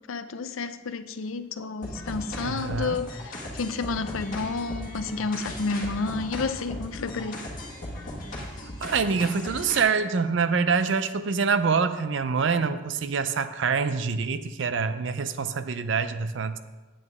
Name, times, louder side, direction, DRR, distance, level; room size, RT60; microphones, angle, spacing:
voice 1, 0.1-7.4, left 4 dB, 90° left, 0.5 m, -31 dB
sound 1, 1.8-9.8, left 1 dB, 45° left, 1.7 m, -37 dB
voice 2, 2.4-3.0 8.8-16.6, right 5 dB, 65° right, 0.5 m, -25 dB
8.8 x 8.5 x 3.6 m
head